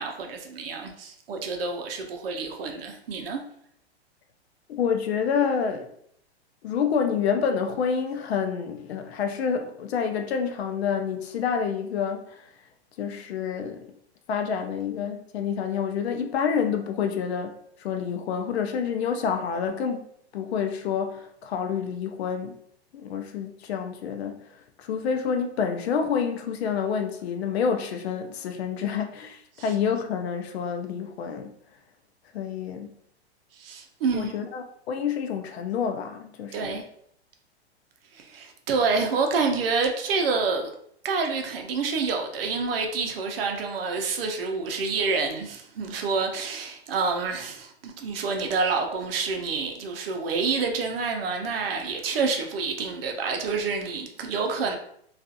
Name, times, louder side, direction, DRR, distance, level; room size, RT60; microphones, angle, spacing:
voice 1, 0.0-3.4 29.6-29.7 33.5-34.3 36.5-36.8 38.1-40.7 41.0-54.8, right 4 dB, 60° right, 0.6 m, -28 dB
voice 2, 4.7-5.9 6.6-12.5 13.0-13.9 14.3-20.0 20.3-22.5 22.9-24.4 24.8-31.5 32.3-32.9 34.1-36.8, left 6 dB, 70° left, 0.5 m, -28 dB
2.4 x 2.4 x 2.6 m
hypercardioid pair, 160°, 33 cm